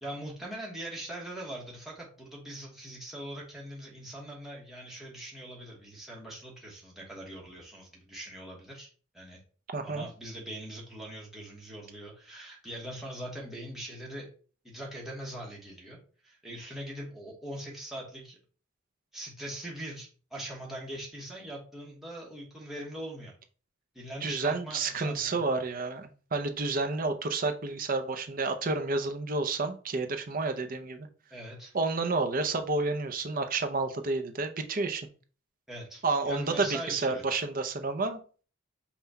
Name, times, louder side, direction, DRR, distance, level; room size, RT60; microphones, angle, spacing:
voice 1, 0.0-8.9 9.1-9.4 9.8-14.3 14.6-16.0 16.2-18.4 19.1-23.3 23.9-25.4 31.3-31.7 35.7-37.2, right 1 dB, ahead, -4 dB, 1.1 m, -41 dB
voice 2, 9.7-10.1 24.2-31.1 31.7-35.1 36.0-38.2, right 3 dB, 45° right, 8 dB, 0.6 m, -30 dB
5.6 x 2.3 x 4.1 m, 0.39 s
head